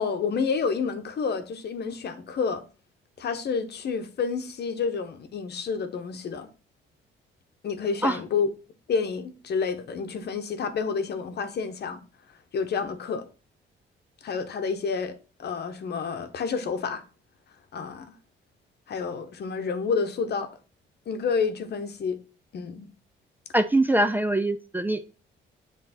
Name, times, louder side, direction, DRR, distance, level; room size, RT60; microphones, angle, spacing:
voice 1, 0.0-2.6 3.2-6.5 7.6-8.5 8.9-12.0 12.5-13.3 14.2-17.0 17.7-18.1 18.9-20.5 21.1-22.2 22.5-22.9, left 5 dB, 55° left, 0.9 m, -29 dB
voice 2, 23.5-25.0, right 1 dB, 10° right, 0.4 m, -23 dB
7.7 x 3.3 x 4.1 m
cardioid pair, 90°, 20 cm